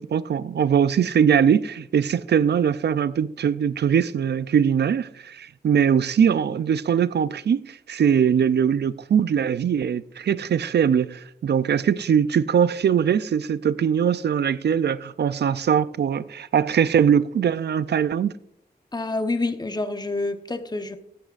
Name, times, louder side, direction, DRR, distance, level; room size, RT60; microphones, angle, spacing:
voice 1, 0.0-18.3, right 8 dB, 85° right, 0.4 m, -21 dB
voice 2, 18.9-21.0, left 2 dB, 25° left, 0.9 m, -27 dB
15.0 x 9.6 x 2.5 m
cardioid pair, 50°, 17 cm